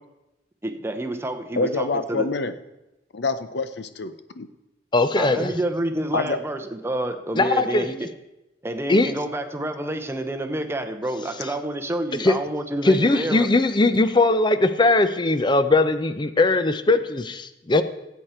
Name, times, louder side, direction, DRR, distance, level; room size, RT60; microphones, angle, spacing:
voice 1, 0.6-2.3 5.2-8.1 8.6-13.5, right 1 dB, 15° right, 7 dB, 0.8 m, -28 dB
voice 2, 1.6-2.5 3.1-4.5 6.1-6.4, left 3 dB, 70° left, 11 dB, 0.7 m, -26 dB
voice 3, 4.9-5.5 7.4-7.8 8.9-9.1 12.2-12.3 12.8-17.8, left 2 dB, 25° left, 11 dB, 0.6 m, -19 dB
16.0 x 8.2 x 4.4 m, 0.96 s
head